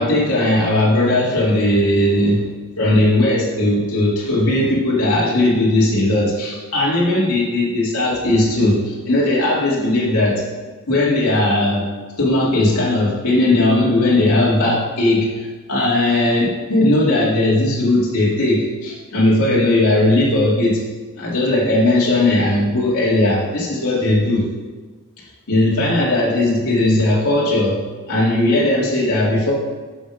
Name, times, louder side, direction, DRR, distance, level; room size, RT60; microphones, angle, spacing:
voice 1, 0.0-2.4 2.8-10.4 10.9-11.9 12.2-20.8 21.2-24.4 25.5-27.8 28.1-29.5, left 1 dB, 75° left, -6 dB, 2.5 m, -17 dB
12.5 x 5.1 x 5.2 m, 1.3 s
head